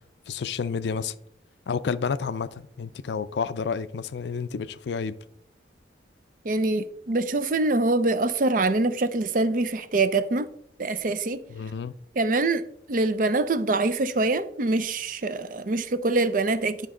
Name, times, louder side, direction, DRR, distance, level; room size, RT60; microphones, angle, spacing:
voice 1, 0.3-1.2 1.7-5.2 11.5-11.9, left 5 dB, 75° left, 0.4 m, -30 dB
voice 2, 6.4-10.5 10.8-11.4 12.2-12.6 12.9-16.9, right 2 dB, 50° right, 0.5 m, -24 dB
10.5 x 5.2 x 3.7 m
head